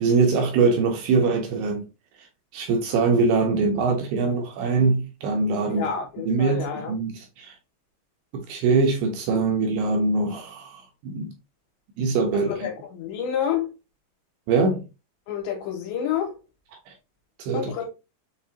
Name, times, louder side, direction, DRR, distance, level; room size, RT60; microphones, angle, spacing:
voice 1, 0.0-1.8 2.2-2.3 2.5-5.9 6.2-7.6 8.3-11.3 12.0-12.7 14.5-14.8 16.9-17.0 17.4-17.9, right 4 dB, 80° right, 2.4 m, -23 dB
voice 2, 5.7-6.9 12.5-13.7 15.3-16.4 17.5-17.9, left 8 dB, 75° left, 3.2 m, -29 dB
7.0 x 2.4 x 2.7 m
omnidirectional pair, 5.2 m